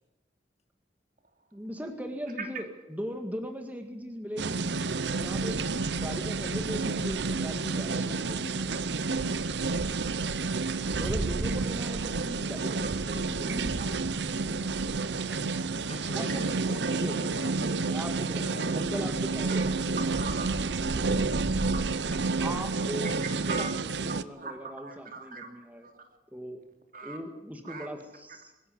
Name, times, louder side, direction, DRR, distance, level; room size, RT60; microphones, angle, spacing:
voice 1, 1.5-4.7 5.1-5.6 5.9-8.7 11.0-13.8 16.1-16.5 16.9-17.1 17.8-20.0 21.0-21.2 22.4-23.1 23.5-25.9 26.3-26.6 27.0-28.5, equal, 10° right, 4 dB, 1.9 m, -38 dB
sound 1, 4.4-24.2, right 3 dB, 70° right, 0.8 m, -30 dB
voice 2, 13.8-14.1 19.5-19.7 20.2-20.7 21.6-21.8 23.2-23.7 24.4-25.5 25.8-26.1 26.9-27.2 27.6-27.9, right 4 dB, 50° right, 5 dB, 3.0 m, -41 dB
voice 3, 15.3-17.8 18.5-18.8 21.6-21.8, left 2 dB, 35° left, 7 dB, 2.2 m, -46 dB
22.5 x 14.0 x 9.3 m, 0.97 s
head